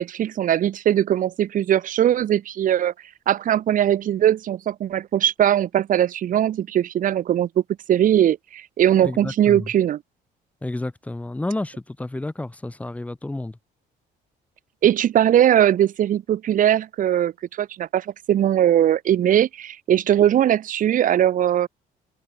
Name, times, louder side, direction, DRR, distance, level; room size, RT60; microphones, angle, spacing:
voice 1, 0.0-2.9 3.3-7.5 7.9-10.0 14.8-17.3 17.6-21.7, right 11 dB, 50° right, 1.0 m, -20 dB
voice 2, 9.0-9.7 10.6-13.6, left 2 dB, 10° left, 0.7 m, -30 dB
cardioid pair, 110°, 17 cm